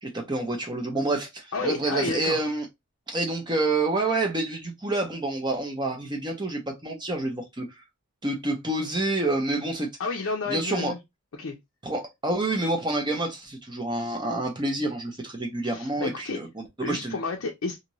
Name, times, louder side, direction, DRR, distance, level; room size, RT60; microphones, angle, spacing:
voice 1, 0.0-2.7 3.1-7.7 8.2-9.9 10.5-10.9 11.8-17.2, right 2 dB, 20° right, 0.7 m, -28 dB
voice 2, 1.5-2.4 10.0-11.0 11.4-11.6 15.6-16.4 16.8-17.8, left 4 dB, 65° left, 0.5 m, -31 dB
2.7 x 2.5 x 3.0 m
head